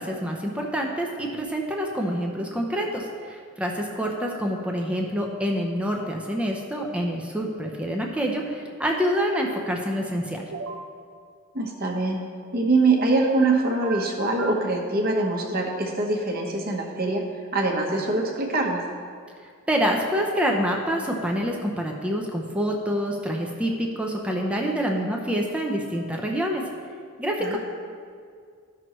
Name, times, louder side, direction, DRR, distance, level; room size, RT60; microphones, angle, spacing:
voice 1, 0.0-10.4 19.7-26.7 27.2-27.6, equal, 5° right, 0 dB, 0.6 m, -27 dB
sound 1, 10.5-10.9 12.9-13.5 13.8-14.6, right 4 dB, 65° right, 0.8 m, -35 dB
voice 2, 11.5-12.2 12.5-17.2 17.5-18.8 27.4-27.6, right 2 dB, 45° right, 0 dB, 1.1 m, -23 dB
13.0 x 6.1 x 3.0 m, 2.2 s
head